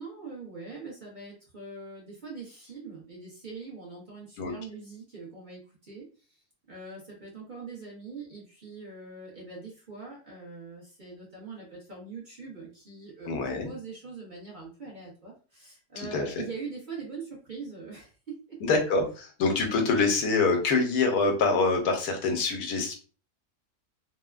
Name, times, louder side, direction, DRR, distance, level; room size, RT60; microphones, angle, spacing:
voice 1, 0.0-18.6, right 4 dB, 40° right, -5 dB, 0.9 m, -42 dB
voice 2, 13.2-13.7 16.0-16.4 18.7-22.9, left 3 dB, 85° left, 3 dB, 1.2 m, -25 dB
3.2 x 2.1 x 2.3 m, 0.37 s
omnidirectional pair, 1.6 m